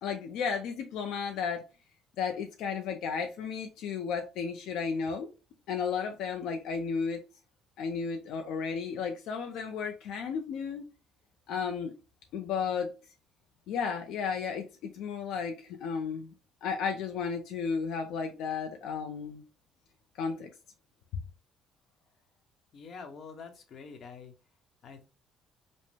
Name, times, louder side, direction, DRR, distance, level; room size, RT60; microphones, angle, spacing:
voice 1, 0.0-1.6 2.2-5.3 5.7-7.2 7.8-10.8 11.5-11.9 12.3-12.9 13.7-16.3 16.6-19.4 20.2-20.5, left 6 dB, 75° left, 0.5 m, -33 dB
voice 2, 22.7-24.3 24.8-25.1, left 5 dB, 45° left, 0.9 m, -46 dB
5.2 x 2.1 x 3.2 m
cardioid pair, 145°, 0 cm